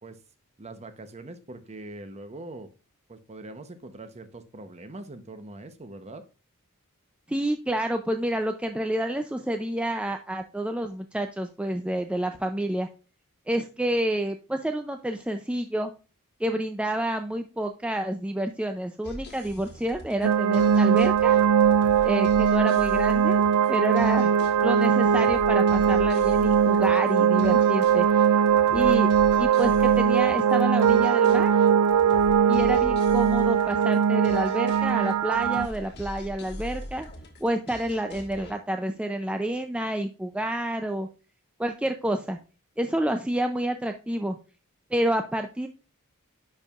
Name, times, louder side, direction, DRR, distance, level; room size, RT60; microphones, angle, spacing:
voice 1, 0.6-2.7 3.1-6.2, right 2 dB, 30° right, 9 dB, 0.8 m, -42 dB
voice 2, 7.3-12.9 13.5-15.9 16.4-21.4 22.0-23.4 23.7-24.3 24.6-28.1 28.7-29.1 29.4-31.5 32.5-37.1 37.4-41.1 41.6-42.4 42.8-44.4 44.9-45.7, right 1 dB, 5° right, 6 dB, 0.4 m, -29 dB
sound 1, 19.0-38.5, left 1 dB, 50° left, 1.4 m, -43 dB
sound 2, 20.2-35.7, right 7 dB, 80° right, 0.4 m, -21 dB
10.5 x 4.6 x 2.4 m, 0.34 s
head